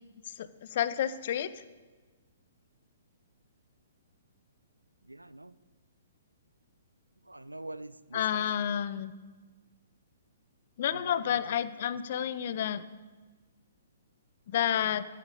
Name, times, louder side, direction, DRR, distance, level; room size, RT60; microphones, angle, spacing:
voice 1, 0.2-1.6 8.1-9.1 10.8-12.8 14.5-15.1, left 10 dB, 45° left, 14 dB, 0.7 m, -30 dB
voice 2, 5.1-5.6 7.3-8.4 10.9-11.2 11.5-11.6, right 2 dB, 85° right, 16 dB, 0.6 m, -43 dB
13.5 x 8.5 x 6.6 m, 1.3 s
figure-of-eight pair, 120°, 0 cm